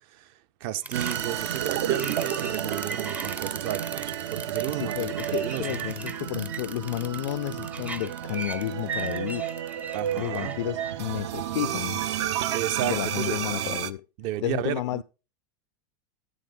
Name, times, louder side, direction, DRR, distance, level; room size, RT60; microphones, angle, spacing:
voice 1, 0.6-5.7 9.9-10.6 12.5-13.3 14.2-15.0, right 13 dB, 50° right, 1.0 m, -33 dB
sound 1, 0.8-10.9, right 3 dB, 10° right, 0.6 m, -38 dB
sound 2, 0.9-13.9, right 11 dB, 70° right, 1.1 m, -31 dB
voice 2, 4.7-9.5 10.2-12.0 12.8-14.0 14.4-15.0, left 15 dB, 85° left, 0.4 m, -31 dB
13.0 x 7.0 x 4.0 m
supercardioid pair, 150°, 15 cm